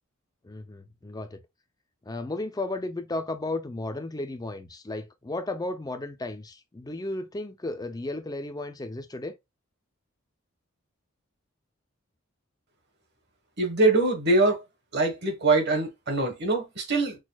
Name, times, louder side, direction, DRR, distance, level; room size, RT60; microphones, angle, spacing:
voice 1, 0.4-1.4 2.1-9.3, left 2 dB, 15° left, 0.4 m, -34 dB
voice 2, 13.6-14.6 14.9-17.2, right 2 dB, 50° right, 1.2 m, -23 dB
6.2 x 2.3 x 2.3 m
head